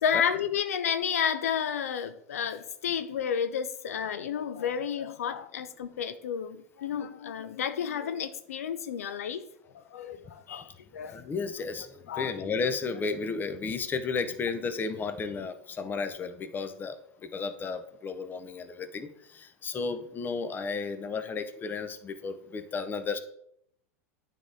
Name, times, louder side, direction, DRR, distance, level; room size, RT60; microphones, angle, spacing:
voice 1, 0.0-9.5 9.9-11.3 12.1-12.4, left 8 dB, 80° left, 0.4 m, -31 dB
voice 2, 11.0-17.0 17.3-19.1 19.3-23.2, left 4 dB, 25° left, 0.7 m, -33 dB
9.2 x 3.7 x 3.8 m
hypercardioid pair, 100°, 8 cm